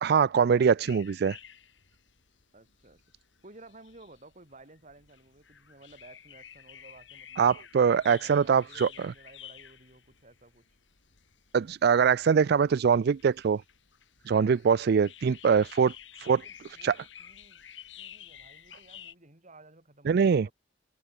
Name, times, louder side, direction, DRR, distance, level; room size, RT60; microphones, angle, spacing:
voice 1, 0.0-1.4 7.4-9.1 11.5-13.6 14.3-15.9 16.2-16.4 16.8-16.9 20.1-20.5, right 6 dB, 60° right, 0.4 m, -23 dB
sound 1, 0.8-19.1, left 10 dB, 75° left, 3.1 m, -52 dB
voice 2, 2.5-3.0 3.4-7.5 8.1-10.7 16.2-17.7 18.0-20.5, right 2 dB, 40° right, 6.9 m, -55 dB
open air
head